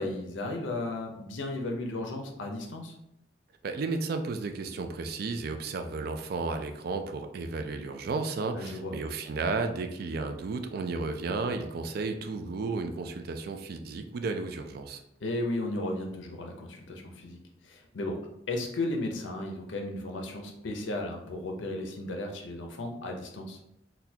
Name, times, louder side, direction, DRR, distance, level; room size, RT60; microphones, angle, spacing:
voice 1, 0.0-2.9 8.5-8.9 15.2-17.4 17.6-18.2 18.5-23.6, left 2 dB, 80° left, 3 dB, 0.6 m, -34 dB
voice 2, 3.6-15.0, right 3 dB, 55° right, 6 dB, 0.3 m, -33 dB
4.0 x 2.3 x 2.7 m, 0.82 s
head